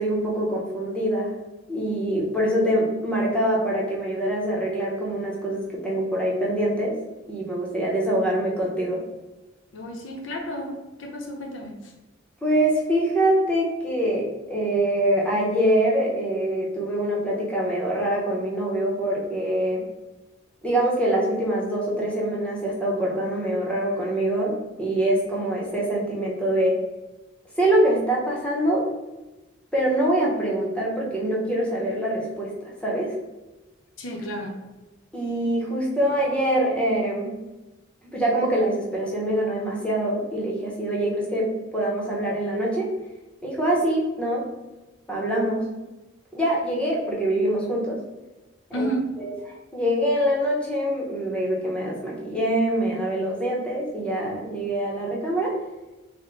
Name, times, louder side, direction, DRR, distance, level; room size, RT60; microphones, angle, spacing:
voice 1, 0.0-1.4 1.7-7.0 7.3-9.0 12.4-19.8 20.6-26.8 27.6-28.9 29.7-33.2 35.1-37.4 38.1-42.9 43.4-44.5 45.1-45.7 46.3-48.0 48.7-48.9 49.2-49.3 49.7-55.5, right 1 dB, 5° left, -4 dB, 0.8 m, -24 dB
voice 2, 9.7-11.9 34.0-34.6 48.7-49.0, right 1 dB, 85° left, 1 dB, 0.7 m, -31 dB
3.4 x 2.1 x 3.8 m, 1.1 s
head